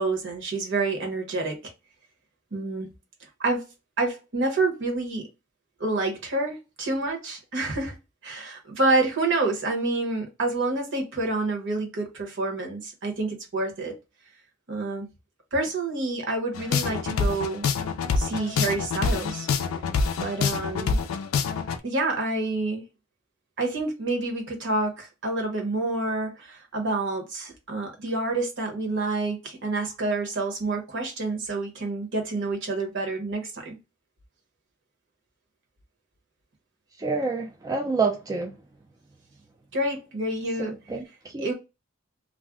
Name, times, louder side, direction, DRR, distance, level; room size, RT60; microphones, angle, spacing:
voice 1, 0.0-1.6 2.5-2.9 3.4-3.6 4.0-5.2 5.8-7.9 8.2-14.0 14.7-15.1 15.5-17.7 18.2-19.5 20.2-21.0 21.8-22.8 23.6-33.8 39.7-40.8 41.4-41.5, right 2 dB, 60° right, 1.0 m, -28 dB
sound 1, 16.5-21.8, left 5 dB, 75° left, 0.4 m, -26 dB
voice 2, 37.0-38.5 40.6-41.5, right 4 dB, 20° right, 0.3 m, -28 dB
2.5 x 2.0 x 3.5 m
head